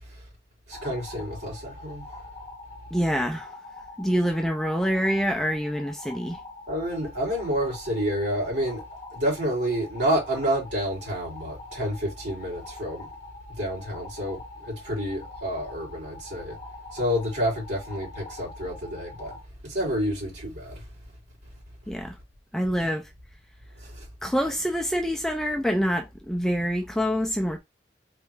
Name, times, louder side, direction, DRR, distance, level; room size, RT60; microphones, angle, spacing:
sound 1, 0.7-19.4, left 2 dB, 20° left, 1.7 m, -44 dB
voice 1, 0.7-2.1 6.7-8.8 9.1-13.1 13.5-16.6 16.9-19.4 19.6-20.8 23.8-24.1, equal, 70° right, 3.0 m, -29 dB
voice 2, 2.9-3.5 4.0-6.4 21.9-22.2 22.5-23.1 24.2-27.6, equal, ahead, 0.4 m, -26 dB
4.3 x 2.7 x 3.4 m
head